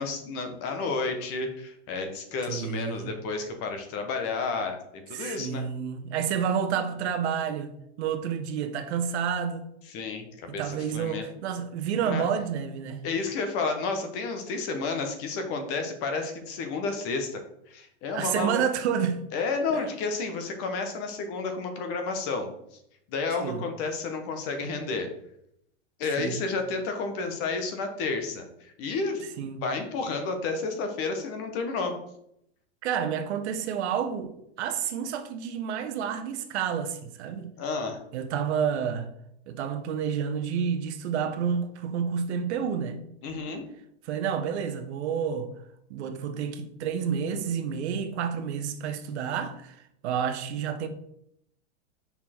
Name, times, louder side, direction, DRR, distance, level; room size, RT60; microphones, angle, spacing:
voice 1, 0.0-5.6 9.9-11.2 12.0-12.3 13.0-17.4 17.7-18.6 19.3-22.5 23.1-25.1 26.0-29.3 29.6-32.0 37.6-38.0 43.2-43.7, left 4 dB, 40° left, 1.2 m, -31 dB
voice 2, 2.5-3.1 5.1-9.7 10.5-13.0 18.1-19.2 19.7-19.9 23.4-23.6 26.2-26.4 29.4-29.6 32.8-37.5 38.1-39.1 39.5-43.0 44.0-45.5 45.9-49.8 50.0-50.9, right 7 dB, 65° right, 1.0 m, -29 dB
5.6 x 4.4 x 4.4 m
supercardioid pair, 145°, 35 cm